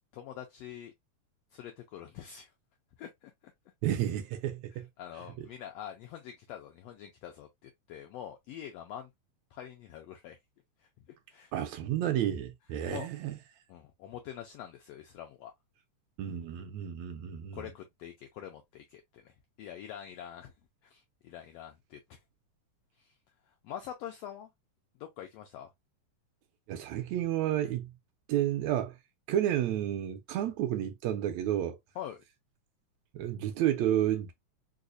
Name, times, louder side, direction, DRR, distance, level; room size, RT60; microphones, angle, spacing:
voice 1, 0.1-0.9 1.5-2.5 3.0-3.3 4.7-9.1 9.5-10.4 11.3-11.5 12.9-13.1 13.7-15.5 17.5-19.3 19.6-20.5 20.8-22.2 23.0-23.1 23.6-24.5 25.0-25.7 31.9-32.2, left 10 dB, 85° left, 1.4 m, -45 dB
voice 2, 3.8-4.9 11.5-13.4 16.2-17.6 26.7-27.9 28.3-28.9 29.3-31.8 33.1-34.3, right 11 dB, 80° right, 1.7 m, -31 dB
4.8 x 2.1 x 2.5 m
omnidirectional pair, 3.4 m